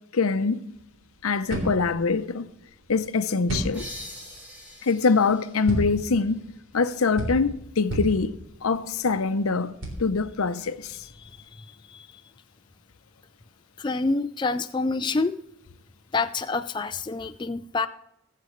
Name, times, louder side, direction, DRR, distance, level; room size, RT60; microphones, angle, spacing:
voice 1, 0.1-0.6 1.2-2.5 2.9-3.8 4.8-8.3 8.6-9.7 10.0-11.0, left 4 dB, 85° left, 0.7 m, -24 dB
sound 1, 0.7-11.4, right 1 dB, 65° right, 3.6 m, -35 dB
sound 2, 3.7-7.2, left 1 dB, 5° right, 1.9 m, -44 dB
voice 2, 13.8-15.3 16.1-17.9, left 3 dB, 20° left, 0.3 m, -27 dB
22.5 x 7.7 x 3.1 m
head